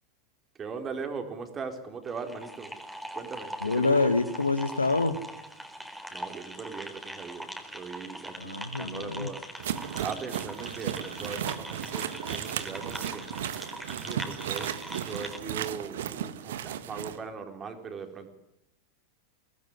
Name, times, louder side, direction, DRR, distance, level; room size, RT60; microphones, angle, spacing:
voice 1, 0.5-2.8 3.1-4.1 6.1-9.4 9.7-13.3 13.9-14.8 15.1-18.3, right 5 dB, 25° right, 6 dB, 4.2 m, -39 dB
sound 1, 2.1-15.4, equal, ahead, 4.1 m, -41 dB
voice 2, 3.6-5.2 8.4-9.3, left 3 dB, 80° left, 13 dB, 1.8 m, -26 dB
sound 2, 9.6-17.2, right 10 dB, 60° right, 1.7 m, -35 dB
24.0 x 18.5 x 9.9 m, 0.83 s
figure-of-eight pair, 90°, 0 cm